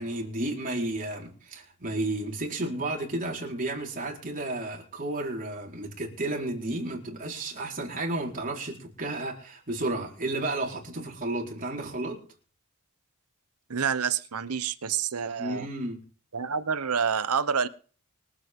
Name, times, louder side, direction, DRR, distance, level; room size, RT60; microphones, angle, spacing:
voice 1, 0.0-12.2 15.4-16.0, right 2 dB, 40° right, 4.3 m, -32 dB
voice 2, 13.7-15.7 16.3-17.7, right 6 dB, 85° right, 0.9 m, -28 dB
24.5 x 8.4 x 3.7 m
head